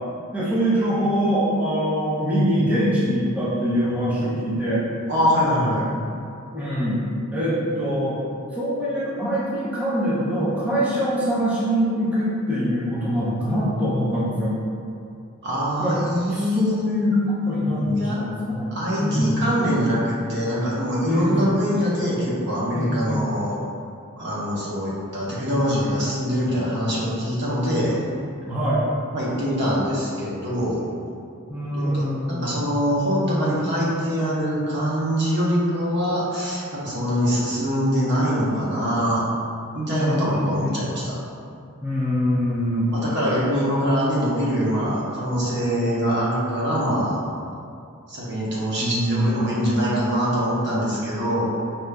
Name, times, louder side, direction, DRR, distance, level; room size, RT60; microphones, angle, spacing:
voice 1, 0.3-4.9 5.8-5.9 6.5-7.0 7.3-8.2 8.5-14.5 15.8-16.0 16.3-18.7 19.0-19.3 21.0-21.5 22.7-23.3 28.4-28.8 31.5-32.6 39.9-40.9 41.8-42.9 48.8-49.8, equal, 5° right, -10 dB, 0.6 m, -23 dB
voice 2, 5.1-5.9 15.4-16.8 17.4-18.2 18.7-23.6 24.2-28.0 29.1-30.8 31.7-39.2 39.7-41.2 42.9-47.2 48.1-51.5, equal, 55° right, -7 dB, 0.9 m, -24 dB
5.0 x 2.9 x 2.2 m, 2.4 s
head